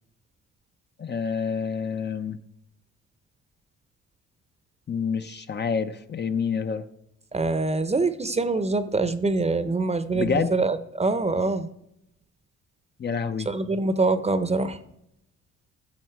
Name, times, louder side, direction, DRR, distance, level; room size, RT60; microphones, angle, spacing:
voice 1, 1.0-2.4 4.9-6.8 10.1-10.5 13.0-13.5, left 6 dB, 35° left, 9 dB, 0.6 m, -27 dB
voice 2, 7.3-11.7 13.5-14.8, right 3 dB, 20° right, 12 dB, 0.8 m, -24 dB
14.0 x 7.1 x 4.6 m, 0.81 s
cardioid pair, 90°, 30 cm